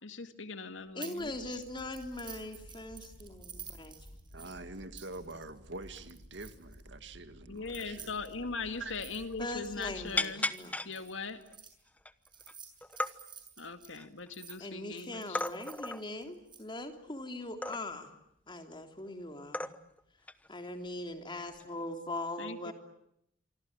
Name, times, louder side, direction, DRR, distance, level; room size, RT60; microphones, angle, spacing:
voice 1, 0.0-1.6 7.5-10.5 10.8-11.4 13.6-15.4 22.4-22.7, left 4 dB, 80° left, 9 dB, 2.2 m, -40 dB
voice 2, 0.9-4.0 9.4-10.8 14.6-18.1 18.5-19.7 20.5-22.7, left 1 dB, 25° left, 6 dB, 3.2 m, -41 dB
sound 1, 1.0-1.2 1.5-6.8 7.6-11.7 12.3-14.6 15.0-16.6, right 8 dB, 25° right, 6.6 m, -51 dB
sound 2, 1.2-10.2, equal, 65° left, 3.8 m, -54 dB
voice 3, 4.3-8.1 8.8-8.9, right 3 dB, 65° right, 10 dB, 2.2 m, -45 dB
sound 3, 8.6-8.8 9.1-9.6 10.2-10.9 11.5-11.6 12.0-12.5 12.8-13.1 13.7-14.6 15.3-16.0 17.6-18.1 19.0-19.1 19.5-20.0 20.3-20.5 21.5-21.8, left 2 dB, 10° left, 1.0 m, -35 dB
27.0 x 25.0 x 8.9 m, 0.76 s
head